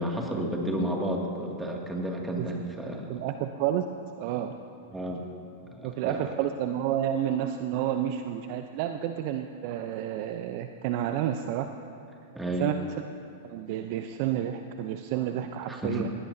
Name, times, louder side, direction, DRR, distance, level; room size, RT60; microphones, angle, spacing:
voice 1, 0.0-3.1 4.9-5.2 5.7-6.2 12.3-12.7 15.7-16.1, equal, 10° right, -1 dB, 2.4 m, -31 dB
voice 2, 3.1-3.8 4.2-4.5 5.8-11.7 12.6-12.8 13.4-16.1, right 11 dB, 55° right, 7 dB, 0.7 m, -30 dB
20.0 x 17.0 x 2.8 m, 2.5 s
hypercardioid pair, 100°, 0 cm